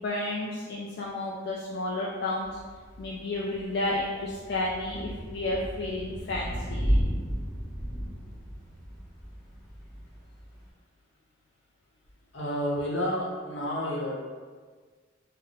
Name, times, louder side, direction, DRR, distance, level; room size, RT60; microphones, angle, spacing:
voice 1, 0.0-2.5 3.0-7.0, left 2 dB, 60° left, -4 dB, 0.4 m, -32 dB
Thunder / Rain, 2.4-10.7, equal, ahead, 0.8 m, -34 dB
voice 2, 12.3-14.1, equal, 80° left, -4 dB, 0.9 m, -30 dB
3.7 x 2.1 x 3.9 m, 1.5 s
head